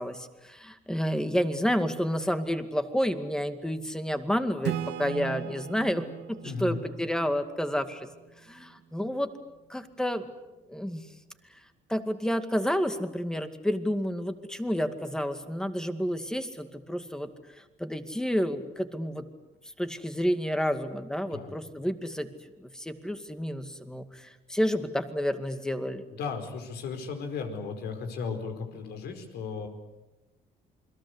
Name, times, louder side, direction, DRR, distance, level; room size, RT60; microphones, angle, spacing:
voice 1, 0.0-8.1 8.4-9.3 9.7-10.3 10.7-11.1 11.9-17.3 17.8-19.3 19.8-22.3 22.6-26.1, equal, 5° left, 8 dB, 2.2 m, -30 dB
Acoustic guitar / Strum, 4.6-8.2, right 11 dB, 80° right, 1.5 m, -37 dB
voice 2, 6.4-6.8 21.3-21.5 26.1-29.7, left 5 dB, 75° left, 6 dB, 4.9 m, -35 dB
28.5 x 22.0 x 8.2 m, 1.0 s
cardioid pair, 110°, 17 cm